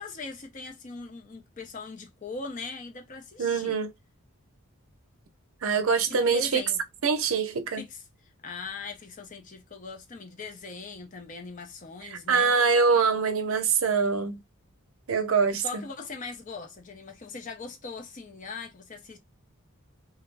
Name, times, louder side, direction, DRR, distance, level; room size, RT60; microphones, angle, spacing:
voice 1, 0.0-3.8 6.1-6.8 7.8-8.0 8.4-12.5 15.6-19.2, left 4 dB, 35° left, 0.5 m, -40 dB
voice 2, 3.4-3.9 5.6-6.6 7.0-7.8 12.0-14.4 15.1-15.8, right 5 dB, 70° right, 0.5 m, -24 dB
2.2 x 2.1 x 3.2 m
head